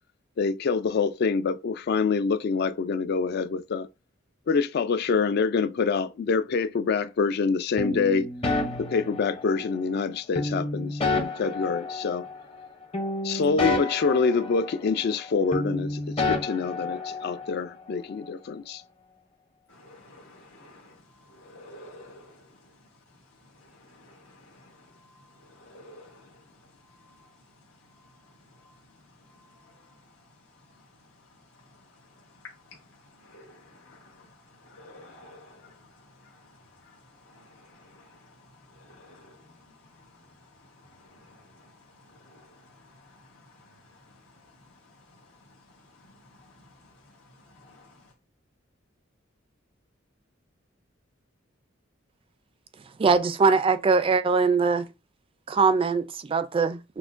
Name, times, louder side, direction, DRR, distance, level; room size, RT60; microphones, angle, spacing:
voice 1, 0.4-3.9 4.5-8.3 8.8-12.3 13.2-18.8, left 5 dB, 55° left, 0.3 m, -26 dB
sound 1, 7.8-9.8 10.4-12.7 12.9-15.3 15.5-17.6, left 2 dB, 30° left, 0.7 m, -30 dB
voice 2, 19.8-20.8 21.4-22.3 25.6-26.1 33.3-33.5 34.7-35.6 39.0-39.2, left 1 dB, 85° left, 1.2 m, -48 dB
voice 3, 53.0-54.9 55.5-57.0, right 4 dB, 25° right, 0.3 m, -22 dB
5.9 x 2.1 x 2.5 m
head